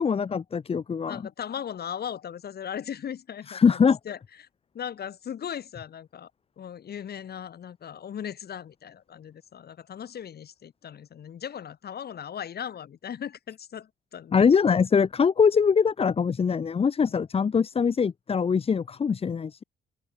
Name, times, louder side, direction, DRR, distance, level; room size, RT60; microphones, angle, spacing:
voice 1, 0.0-1.2 3.5-4.0 14.3-19.6, left 6 dB, 30° left, 0.6 m, -23 dB
voice 2, 1.1-4.5 4.7-6.3 6.6-14.5 17.1-17.2, left 9 dB, 55° left, 1.3 m, -38 dB
cardioid pair, 90°, 20 cm